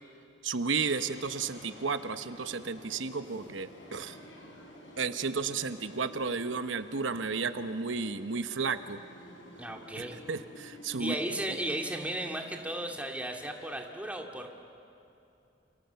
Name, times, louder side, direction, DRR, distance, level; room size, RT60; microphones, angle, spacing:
voice 1, 0.4-4.2 5.0-9.0 10.0-11.2, right 4 dB, 90° right, 10 dB, 1.0 m, -33 dB
sound 1, 0.7-13.8, equal, 85° left, 5.1 m, -51 dB
voice 2, 9.6-10.2 11.0-14.6, right 1 dB, 10° right, 2 dB, 2.3 m, -35 dB
29.5 x 28.5 x 7.0 m, 2.7 s
head